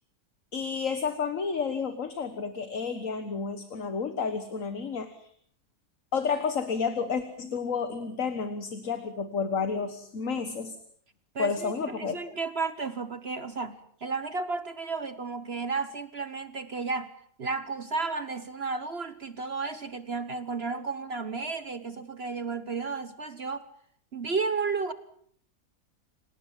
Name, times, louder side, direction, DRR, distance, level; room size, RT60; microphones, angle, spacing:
voice 1, 0.5-5.3 6.1-10.8 11.4-12.2, left 5 dB, 60° left, 10 dB, 1.8 m, -31 dB
voice 2, 11.3-17.1 17.4-23.7 24.1-24.9, right 4 dB, 45° right, 13 dB, 1.3 m, -33 dB
28.5 x 18.5 x 7.5 m, 0.63 s
omnidirectional pair, 1.6 m